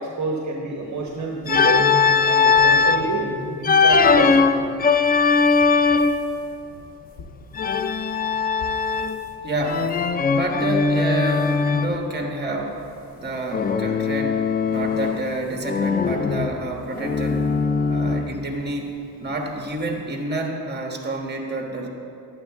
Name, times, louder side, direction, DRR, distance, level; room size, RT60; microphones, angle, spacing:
voice 1, 0.0-1.9 2.3-3.3 3.6-4.4, right 4 dB, 40° right, 0 dB, 1.1 m, -28 dB
sound 1, 1.4-4.7 5.2-9.3 9.7-10.1 10.6-10.9 11.2-11.5 12.1-12.2 12.6-12.7 13.8-13.9 14.7-15.5 16.7-16.8 17.2-17.3 17.6-17.7, left 1 dB, 55° left, 1.1 m, -38 dB
Organ, 1.5-3.1 3.6-6.3 7.5-9.3 9.7-12.0 13.5-15.3 15.6-18.4, left 5 dB, 25° left, 0.3 m, -20 dB
voice 2, 9.4-9.9 10.3-12.8 13.2-17.5 17.9-21.9, right 2 dB, 25° right, 2 dB, 1.4 m, -28 dB
11.5 x 8.8 x 3.5 m, 2.7 s
cardioid pair, 90°, 42 cm